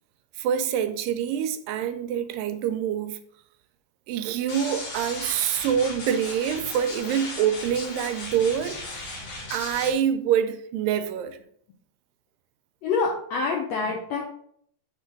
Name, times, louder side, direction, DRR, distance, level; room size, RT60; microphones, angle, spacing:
voice 1, 0.4-3.2 4.1-9.2 9.5-11.4, right 9 dB, 85° right, 2.3 m, -26 dB
sound 1, 4.5-9.9, left 2 dB, 60° left, 3.0 m, -37 dB
voice 2, 12.8-14.2, left 4 dB, 75° left, 1.6 m, -26 dB
6.5 x 3.2 x 5.2 m
omnidirectional pair, 4.0 m